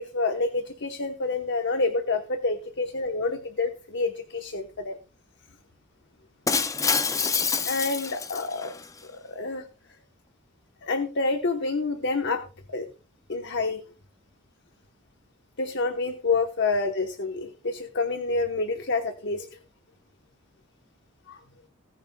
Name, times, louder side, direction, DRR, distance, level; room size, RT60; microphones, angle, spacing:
voice 1, 0.0-4.9 7.6-8.7 9.3-9.6 10.8-12.4 12.7-12.9 13.3-13.8 15.6-19.5 21.3-21.4, left 3 dB, 55° left, 6 dB, 1.1 m, -28 dB
Shatter, 6.5-8.9, left 5 dB, 15° left, 0.4 m, -26 dB
18.5 x 10.0 x 2.3 m, 0.34 s
head